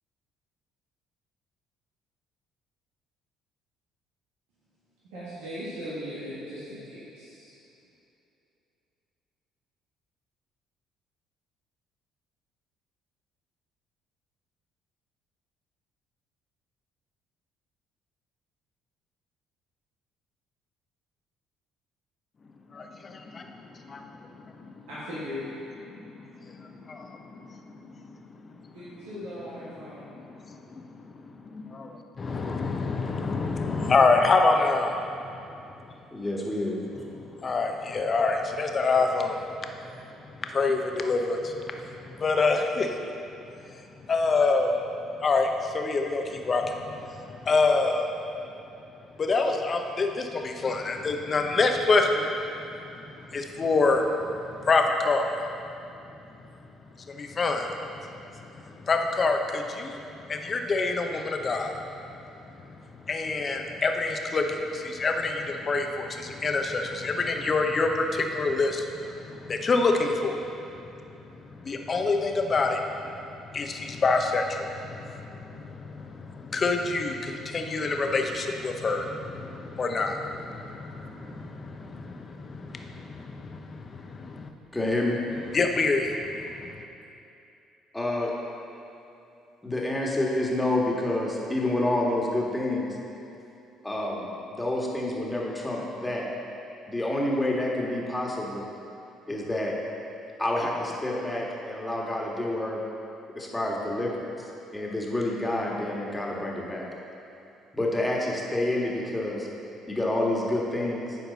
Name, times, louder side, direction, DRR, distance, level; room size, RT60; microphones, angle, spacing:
voice 1, 5.0-7.5 24.9-25.5 28.7-30.1, equal, 85° right, -11 dB, 1.8 m, -38 dB
voice 2, 23.0-24.7 25.9-28.2 30.1-35.4 37.3-39.9 40.4-42.9 43.7-44.8 45.2-48.1 49.2-52.3 53.3-55.4 57.1-60.0 60.3-61.8 62.7-70.4 70.7-70.8 71.2-71.3 71.6-84.5 85.5-86.8, left 3 dB, 40° left, 4 dB, 0.8 m, -27 dB
voice 3, 36.1-36.9 84.7-85.2 87.9-88.3 89.6-93.0 93.8-96.2 96.9-98.6 99.3-99.7 100.4-102.8 103.3-106.8 107.7-109.5 109.9-111.2, left 1 dB, 15° left, -3 dB, 1.7 m, -28 dB
10.5 x 4.6 x 4.1 m, 2.8 s
supercardioid pair, 65°, 0 cm